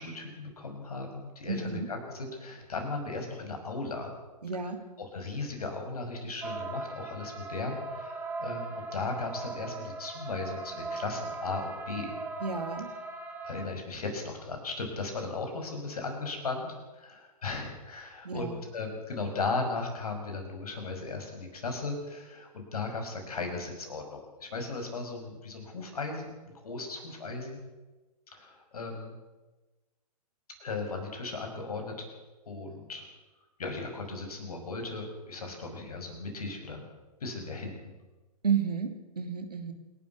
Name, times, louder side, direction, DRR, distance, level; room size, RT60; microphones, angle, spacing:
voice 1, 0.0-4.1 5.0-12.1 13.4-26.4 26.6-27.6 28.3-29.2 30.6-32.1 32.5-33.1 33.6-36.8 37.2-37.7, left 3 dB, 70° left, 4 dB, 6.0 m, -36 dB
voice 2, 1.5-1.9 4.4-4.8 12.4-12.9 18.2-18.6 38.4-39.7, right 6 dB, 80° right, 7 dB, 2.9 m, -31 dB
sound 1, 6.4-13.7, right 3 dB, 10° right, 3.4 m, -39 dB
27.5 x 12.0 x 8.1 m, 1.2 s
figure-of-eight pair, 110°, 20 cm